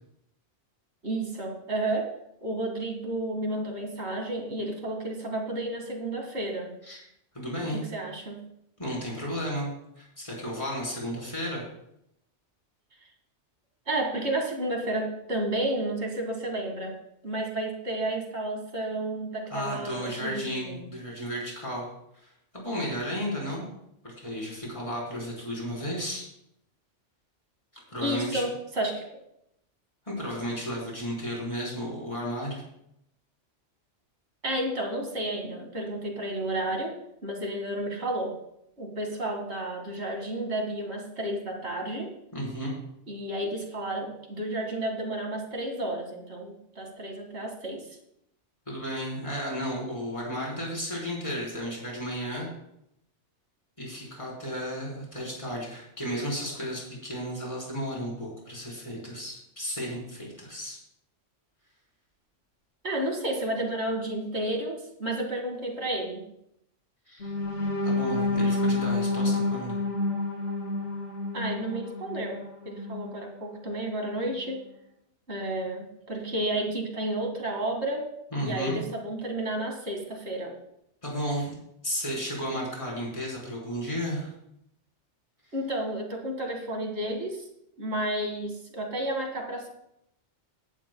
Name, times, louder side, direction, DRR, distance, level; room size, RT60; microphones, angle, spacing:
voice 1, 1.0-2.1 2.4-6.7 7.7-8.4 13.9-17.0 17.2-20.8 28.0-29.1 34.4-38.4 38.8-42.1 43.1-47.8 62.8-66.2 71.3-74.6 75.3-78.1 78.4-80.5 85.5-87.5 87.8-89.7, right 1 dB, 65° right, 2 dB, 2.4 m, -31 dB
voice 2, 7.3-7.8 8.8-11.6 19.5-21.9 22.1-23.7 24.0-26.3 27.9-28.4 30.1-32.6 42.3-42.7 48.7-52.5 53.8-60.8 67.1-67.3 67.8-69.8 78.3-78.8 81.0-81.5 81.8-84.3, equal, 25° left, -4 dB, 4.3 m, -33 dB
sound 1, 67.2-73.1 73.6-73.8 74.2-74.4, left 2 dB, 75° left, 2.7 m, -29 dB
17.0 x 11.0 x 2.3 m, 0.77 s
omnidirectional pair, 1.2 m